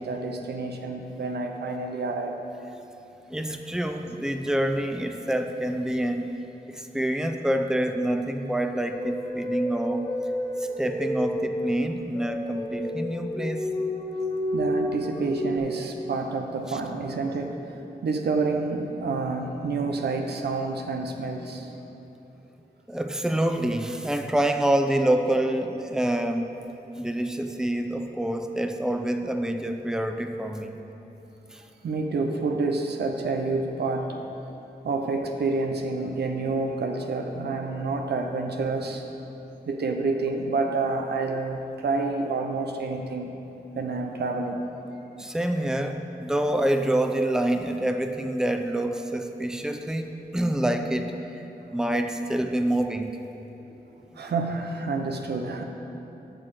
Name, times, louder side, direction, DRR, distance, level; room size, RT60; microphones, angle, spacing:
voice 1, 0.0-2.4 14.5-17.6 18.0-21.7 31.8-34.2 34.8-39.0 39.6-43.3 43.7-44.6 53.7-53.8 54.2-55.6, right 3 dB, 85° right, 4 dB, 0.7 m, -28 dB
voice 2, 3.3-6.3 6.7-10.1 10.8-13.7 16.7-16.8 22.9-26.6 27.0-30.8 31.5-31.6 45.2-51.4 51.7-53.2 54.1-54.3, right 1 dB, 5° right, 6 dB, 0.7 m, -27 dB
sound 1, 8.9-15.6, left 1 dB, 25° left, 1.3 m, -30 dB
7.9 x 5.9 x 6.6 m, 3.0 s
cardioid pair, 45°, 17 cm